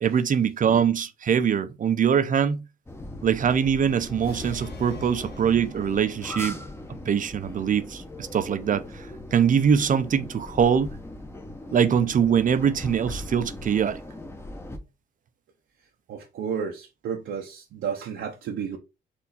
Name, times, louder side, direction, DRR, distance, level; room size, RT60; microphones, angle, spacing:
voice 1, 0.0-2.6 3.2-6.6 7.1-10.9 11.7-14.0, right 7 dB, 40° right, 0.5 m, -23 dB
sound 1, 2.9-14.8, left 1 dB, 10° left, 0.8 m, -39 dB
sound 2, 4.2-6.5, left 4 dB, 55° left, 1.0 m, -43 dB
voice 2, 16.1-18.8, right 7 dB, 75° right, 0.8 m, -32 dB
4.3 x 2.7 x 4.0 m
cardioid pair, 90°, 20 cm